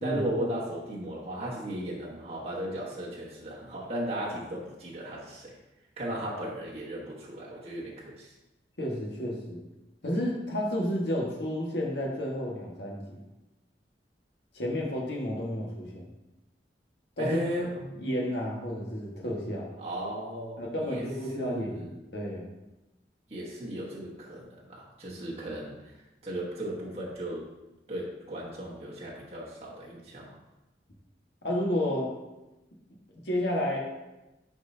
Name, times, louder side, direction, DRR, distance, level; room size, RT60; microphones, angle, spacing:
voice 1, 0.0-5.6 6.0-8.3 17.2-17.7 19.8-21.1 21.3-21.9 23.3-25.9 26.2-27.5 27.9-30.4, right 1 dB, 35° right, -6 dB, 1.3 m, -36 dB
voice 2, 8.8-9.6 10.0-13.2 14.5-16.1 17.2-17.4 18.0-19.7 20.6-21.9 22.1-22.4 31.4-32.1 33.2-33.8, left 1 dB, 75° left, -2 dB, 1.6 m, -31 dB
10.5 x 4.6 x 2.8 m, 1.0 s
head